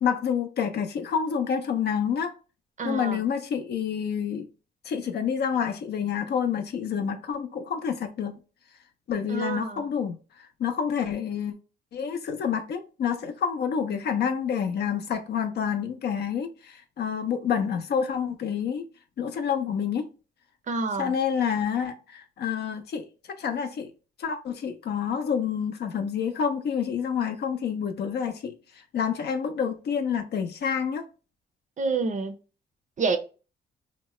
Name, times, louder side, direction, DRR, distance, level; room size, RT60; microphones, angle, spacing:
voice 1, 0.0-2.3 2.8-4.5 4.8-8.4 9.1-11.5 11.9-18.8 19.2-20.1 21.0-23.9 24.2-28.6 28.9-31.1, left 7 dB, 55° left, 0.5 m, -28 dB
voice 2, 2.8-3.2 9.3-9.8 20.7-21.1 31.8-32.4 33.0-33.2, right 4 dB, 40° right, 0.5 m, -28 dB
2.8 x 2.1 x 2.9 m
cardioid pair, 90°, 20 cm